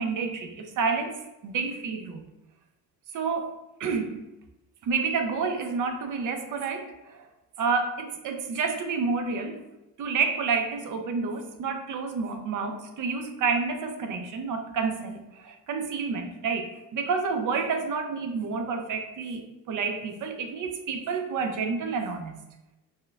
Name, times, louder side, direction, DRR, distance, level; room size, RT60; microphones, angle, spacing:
voice 1, 0.0-2.3 3.1-3.5 3.8-4.2 4.8-7.2 7.6-9.6 10.0-22.4, right 5 dB, 45° right, 6 dB, 0.6 m, -29 dB
6.2 x 2.2 x 2.3 m, 0.94 s
supercardioid pair, 90°, 41 cm